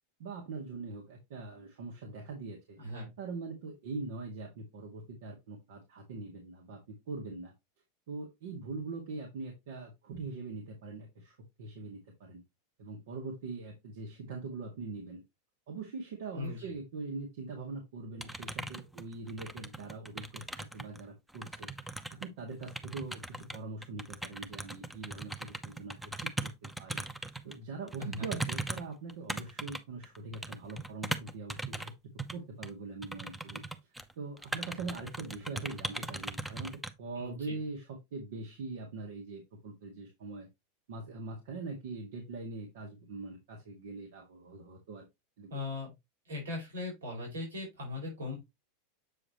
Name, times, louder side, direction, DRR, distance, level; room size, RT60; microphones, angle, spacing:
voice 1, 0.2-2.8 3.2-6.8 7.1-7.5 8.1-12.4 12.8-15.2 15.7-21.9 22.2-26.5 26.8-27.0 27.4-31.9 32.3-33.6 34.2-40.5 40.9-45.1 45.4-45.6, right 3 dB, 70° right, 1 dB, 2.0 m, -42 dB
voice 2, 2.8-3.1 16.3-16.7 28.0-28.3 37.1-37.6 45.5-45.9 46.2-48.4, left 2 dB, 90° right, -2 dB, 4.6 m, -39 dB
sound 1, 18.2-21.0 21.3-27.5 27.9-31.9 32.2-32.4 32.6-32.7 33.0-34.1 34.4-36.9, right 2 dB, 5° right, 0.8 m, -39 dB
7.7 x 4.9 x 3.1 m, 0.20 s
hypercardioid pair, 105°, 0 cm